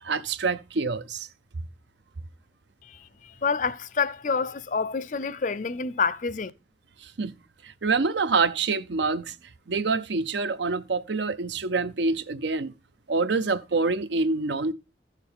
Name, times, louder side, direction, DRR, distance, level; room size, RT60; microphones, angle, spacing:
voice 1, 0.0-1.3 7.0-7.3 7.6-9.4 9.7-12.7 13.1-14.7, right 4 dB, 75° right, 0.6 m, -26 dB
voice 2, 2.8-6.5, left 5 dB, 45° left, 0.5 m, -28 dB
14.0 x 6.5 x 3.5 m
head